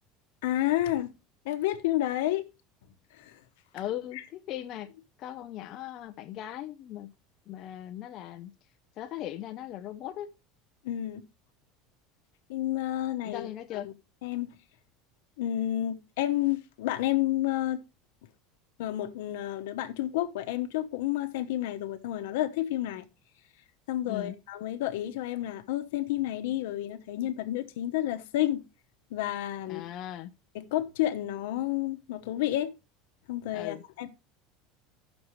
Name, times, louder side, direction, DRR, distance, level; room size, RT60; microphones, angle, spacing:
voice 1, 0.4-1.1 1.4-2.5 3.2-3.4 10.8-11.2 12.5-13.8 14.2-14.5 15.4-17.8 18.8-23.1 23.9-28.6 29.1-29.8 30.5-32.7 33.3-34.1, left 13 dB, 85° left, 0.9 m, -30 dB
voice 2, 3.7-4.9 5.2-7.1 7.5-8.5 9.0-10.3 13.2-13.9 24.0-24.3 29.7-30.3 33.5-33.8, left 12 dB, 40° left, 0.5 m, -38 dB
15.0 x 6.2 x 3.1 m
cardioid pair, 160°, 0 cm